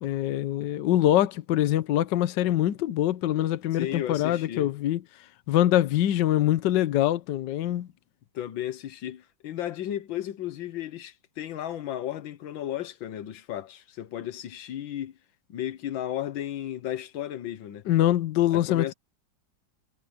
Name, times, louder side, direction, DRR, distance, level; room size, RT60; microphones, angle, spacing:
voice 1, 0.0-5.0 5.5-7.9 17.9-18.9, left 13 dB, 70° left, 1.4 m, -24 dB
voice 2, 3.7-4.7 8.4-15.1 15.5-17.8 18.5-18.9, left 11 dB, 85° left, 1.8 m, -34 dB
omnidirectional pair, 2.1 m